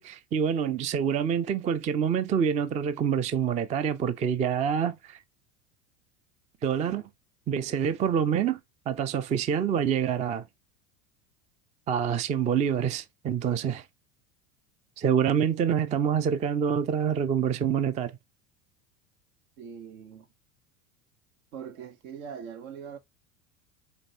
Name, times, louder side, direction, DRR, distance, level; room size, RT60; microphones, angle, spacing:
voice 1, 0.0-5.2 6.6-7.0 7.5-8.6 8.9-10.4 11.9-13.8 15.0-18.1, right 8 dB, 15° right, 0.4 m, -26 dB
voice 2, 19.6-20.3 21.5-23.0, right 7 dB, 65° right, 1.2 m, -41 dB
5.0 x 3.4 x 2.8 m
hypercardioid pair, 80°, 45 cm